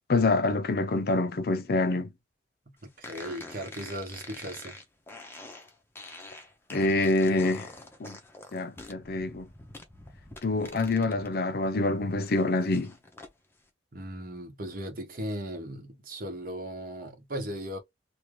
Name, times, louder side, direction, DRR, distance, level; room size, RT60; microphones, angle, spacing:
voice 1, 0.1-2.1 6.7-7.7 8.0-8.2 8.5-9.5 10.4-12.9, left 2 dB, 55° left, 0.5 m, -26 dB
voice 2, 2.7-4.8 13.9-17.8, equal, 50° right, 1.1 m, -37 dB
sound 1, 3.0-11.3 11.7-13.3, left 2 dB, 15° left, 0.7 m, -46 dB
2.9 x 2.4 x 3.2 m
head